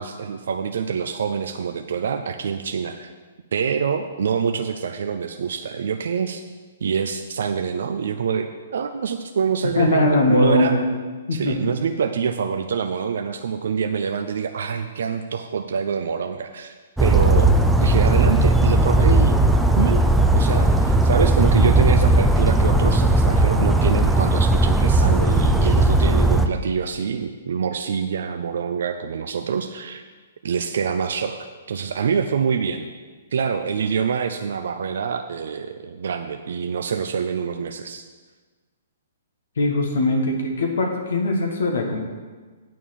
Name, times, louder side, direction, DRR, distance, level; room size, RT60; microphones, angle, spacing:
voice 1, 0.0-3.1 3.5-6.4 6.8-10.7 11.3-17.5 17.8-19.4 19.8-20.0 20.3-30.0 30.4-32.9 33.3-38.0, right 6 dB, 70° right, 6 dB, 0.5 m, -25 dB
voice 2, 9.8-10.9 11.3-11.6 39.6-42.0, left 2 dB, 75° left, 1 dB, 1.4 m, -20 dB
Bird vocalization bird call bird song, 17.0-26.5, right 2 dB, 5° right, 0.6 m, -17 dB
9.1 x 4.6 x 7.4 m, 1.4 s
hypercardioid pair, 125°, 0 cm